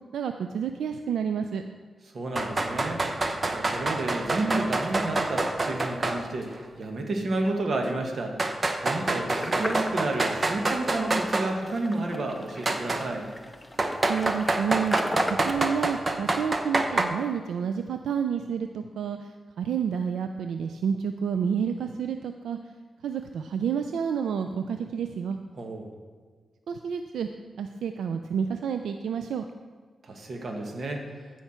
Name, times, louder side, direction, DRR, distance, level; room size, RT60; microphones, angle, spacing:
voice 1, 0.1-1.6 14.1-15.0 15.4-19.3 19.6-22.6 23.0-25.4 26.7-27.3 27.6-29.5, right 7 dB, 90° right, 7 dB, 0.4 m, -29 dB
voice 2, 2.1-3.0 3.5-13.3 25.6-25.9 30.0-31.1, right 2 dB, 60° right, 2 dB, 1.6 m, -31 dB
sound 1, 2.4-6.2 6.5-6.6 7.5-7.6 8.4-11.5 12.7-13.0 13.8-17.1, right 2 dB, 40° right, 0.9 m, -27 dB
sound 2, 9.4-15.5, left 1 dB, 5° left, 1.0 m, -36 dB
15.0 x 5.8 x 4.4 m, 1.5 s
cardioid pair, 65°, 0 cm